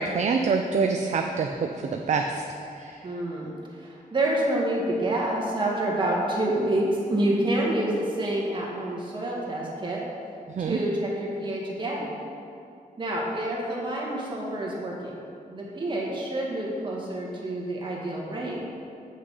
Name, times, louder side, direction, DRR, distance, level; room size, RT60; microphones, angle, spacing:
voice 1, 0.0-2.4 2.7-3.1 10.5-10.8, right 4 dB, 50° right, 4 dB, 0.5 m, -26 dB
voice 2, 3.0-10.0 10.6-12.0 13.0-15.1 15.5-18.6, right 1 dB, 30° right, -3 dB, 1.7 m, -28 dB
7.9 x 6.4 x 5.4 m, 2.6 s
wide cardioid pair, 160°, 15 cm